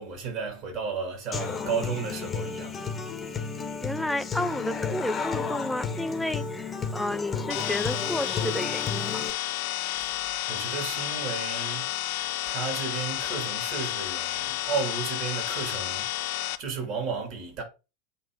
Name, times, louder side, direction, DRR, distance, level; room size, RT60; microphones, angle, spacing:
voice 1, 0.0-2.8 10.0-12.0 12.5-16.2 16.6-17.6, right 5 dB, 45° right, 2.9 m, -33 dB
Human voice / Acoustic guitar, 1.3-9.3, left 5 dB, 20° left, 1.2 m, -32 dB
voice 2, 3.8-9.3, left 1 dB, 5° left, 0.7 m, -31 dB
sound 1, 7.5-16.5, left 16 dB, 55° left, 0.4 m, -31 dB
8.5 x 3.4 x 3.8 m
figure-of-eight pair, 80°, 0 cm